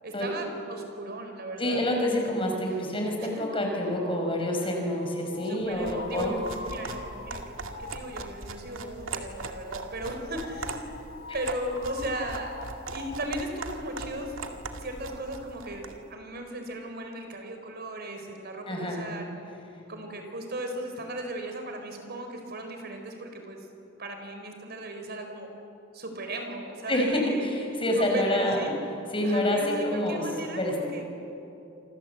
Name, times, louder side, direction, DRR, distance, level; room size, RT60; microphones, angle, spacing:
voice 1, 0.0-1.8 2.7-2.8 3.2-3.5 5.4-10.9 11.3-14.3 14.8-19.3 19.9-23.7 24.0-25.5 25.9-27.5 28.0-28.7 29.2-31.0, right 1 dB, 55° right, 5 dB, 4.3 m, -36 dB
voice 2, 1.6-6.3 18.7-19.0 26.9-27.5 27.8-28.7 29.1-30.2 30.5-30.8, left 1 dB, 25° left, 1 dB, 6.0 m, -27 dB
sound 1, 5.3-14.2, left 3 dB, 65° left, 3.1 m, -45 dB
sound 2, 5.7-16.0, right 3 dB, 90° right, 2.2 m, -40 dB
28.0 x 25.5 x 8.2 m, 2.9 s
head